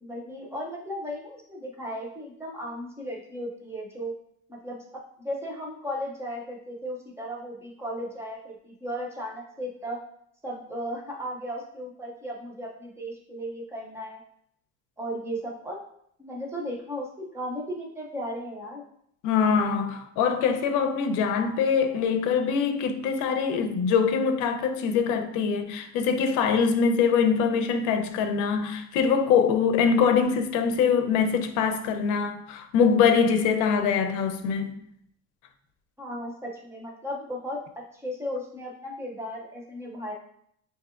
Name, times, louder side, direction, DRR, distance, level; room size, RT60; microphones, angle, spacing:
voice 1, 0.0-4.1 4.5-10.0 10.4-14.2 15.0-15.8 16.2-18.8 36.0-40.1, equal, 10° right, 0.5 m, -35 dB
voice 2, 19.2-34.8, left 6 dB, 90° left, 0.7 m, -23 dB
6.6 x 2.8 x 2.5 m
cardioid pair, 180°, 29 cm